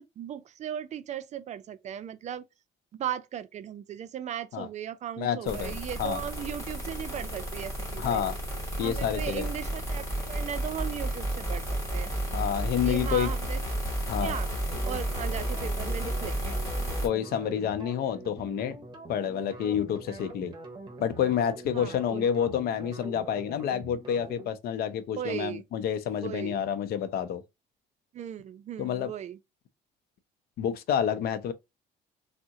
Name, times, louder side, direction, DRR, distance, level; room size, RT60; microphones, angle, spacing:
voice 1, 0.0-2.5 2.9-8.2 8.8-12.1 12.8-13.9 14.2-14.5 14.8-16.6 21.7-22.3 25.2-25.6 26.2-26.6 28.1-29.4, right 10 dB, 45° right, 0.4 m, -37 dB
voice 2, 5.2-6.2 8.0-8.3 8.8-9.5 12.3-13.3 14.1-14.4 17.0-18.8 19.1-20.5 21.0-27.4 28.8-29.1 30.6-31.5, left 9 dB, 65° left, 0.5 m, -29 dB
sound 1, 5.5-17.1, right 1 dB, 15° left, 1.9 m, -32 dB
sound 2, 14.7-24.5, right 2 dB, 25° right, 1.0 m, -44 dB
3.5 x 2.1 x 2.7 m
cardioid pair, 110°, 17 cm